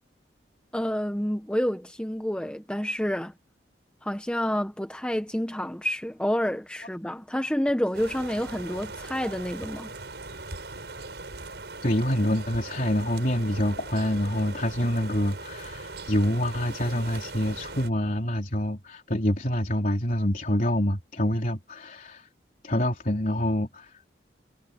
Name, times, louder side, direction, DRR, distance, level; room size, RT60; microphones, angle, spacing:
voice 1, 0.7-3.3 4.0-9.9, equal, 5° left, 0.8 m, -29 dB
sound 1, 7.9-17.9, right 3 dB, 75° right, 5.8 m, -40 dB
voice 2, 11.8-22.3 22.6-24.0, equal, 45° left, 3.8 m, -26 dB
head